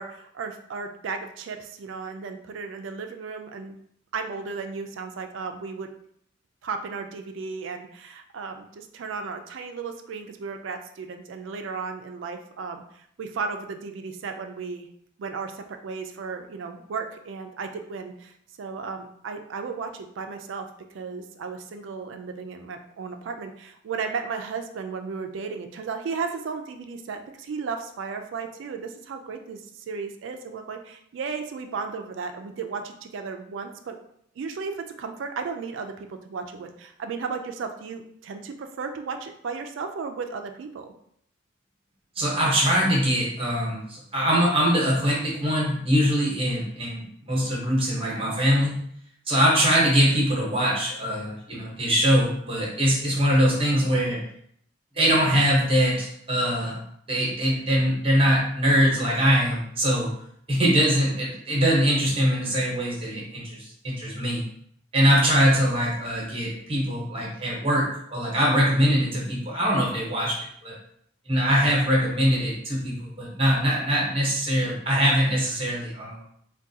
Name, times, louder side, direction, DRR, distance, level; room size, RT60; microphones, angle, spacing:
voice 1, 0.0-3.8 4.1-5.9 6.6-14.9 15.2-20.7 20.9-34.0 34.4-40.9, right 5 dB, 65° right, 6 dB, 0.3 m, -34 dB
voice 2, 42.2-48.7 49.3-54.2 54.9-56.8 57.1-60.1 60.5-64.4 64.9-70.7 71.3-76.2, equal, 25° right, -4 dB, 0.9 m, -22 dB
3.5 x 2.2 x 2.7 m, 0.68 s
head